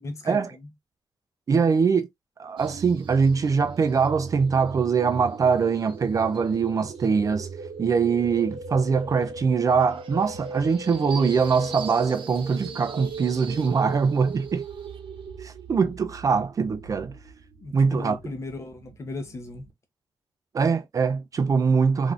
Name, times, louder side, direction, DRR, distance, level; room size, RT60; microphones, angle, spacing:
voice 1, 0.0-0.7 17.6-19.7, left 2 dB, 35° left, 0.7 m, -36 dB
voice 2, 1.5-2.1 2.4-7.5 7.8-14.6 15.4-17.2 17.7-18.2 20.5-22.1, right 5 dB, 40° right, 0.4 m, -23 dB
sound 1, 2.6-19.7, right 4 dB, 85° right, 0.7 m, -39 dB
3.4 x 2.5 x 2.3 m
wide cardioid pair, 180°, 9 cm